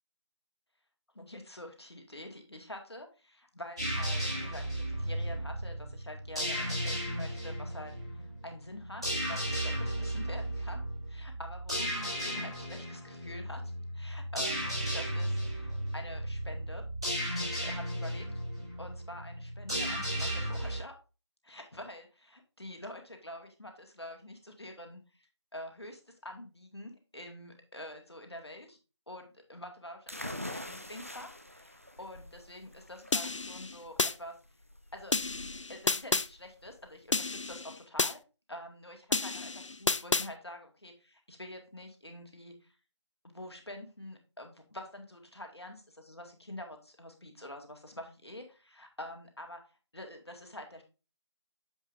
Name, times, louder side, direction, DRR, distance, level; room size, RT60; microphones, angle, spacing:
voice 1, 1.1-13.6 13.9-16.8 17.4-18.3 18.8-20.9 21.4-28.8 29.1-34.3 34.9-35.2 35.7-38.2 38.5-42.7 43.2-49.6 49.9-50.8, left 1 dB, 60° left, 4 dB, 1.8 m, -46 dB
sound 1, 3.8-20.8, equal, 10° right, 2.7 m, -35 dB
sound 2, 30.1-37.6, left 1 dB, 30° right, 0.5 m, -45 dB
sound 3, 33.1-34.1 35.1-36.3 37.1-38.1 39.1-40.3, left 3 dB, 85° left, 0.4 m, -30 dB
7.3 x 6.3 x 2.6 m, 0.31 s
figure-of-eight pair, 175°, 15 cm